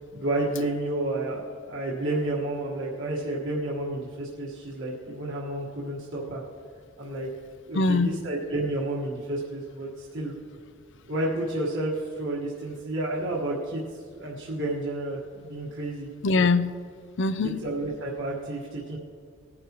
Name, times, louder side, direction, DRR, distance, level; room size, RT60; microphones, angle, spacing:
voice 1, 0.1-6.4 7.0-7.3 7.7-10.4 11.1-13.8 14.1-16.1 17.6-19.0, right 1 dB, 55° right, -5 dB, 1.5 m, -30 dB
voice 2, 7.0-8.2 16.2-16.8 17.2-17.6, left 3 dB, 55° left, 13 dB, 0.5 m, -24 dB
19.5 x 9.8 x 3.0 m, 2.3 s
head